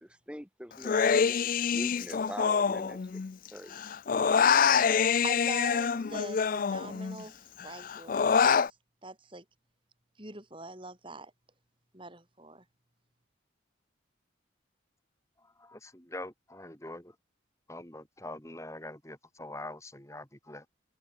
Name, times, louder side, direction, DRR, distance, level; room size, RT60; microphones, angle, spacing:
voice 1, 0.0-3.3 3.5-3.8 4.1-4.3, equal, 5° right, 3.3 m, -44 dB
Human voice, 0.8-3.5 3.7-7.2 7.6-8.7, left 6 dB, 45° left, 0.4 m, -26 dB
voice 2, 5.2-7.4 7.6-8.3 8.6-8.7 9.0-9.4 10.2-11.3 11.9-12.6, right 2 dB, 25° right, 4.4 m, -43 dB
voice 3, 15.4-17.2 17.7-20.7, left 1 dB, 15° left, 3.2 m, -44 dB
head